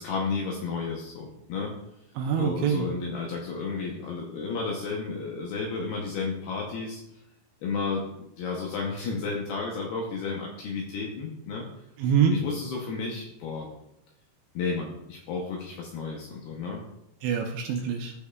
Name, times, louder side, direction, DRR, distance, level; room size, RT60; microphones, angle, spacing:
voice 1, 0.0-1.7 2.4-7.0 7.6-8.1 8.4-11.6 12.3-13.7 14.5-16.8, left 4 dB, 75° left, -1 dB, 2.4 m, -32 dB
voice 2, 2.2-2.9 12.0-12.4 17.2-18.1, right 7 dB, 80° right, 2 dB, 2.7 m, -25 dB
15.0 x 5.3 x 2.3 m, 0.81 s
omnidirectional pair, 5.6 m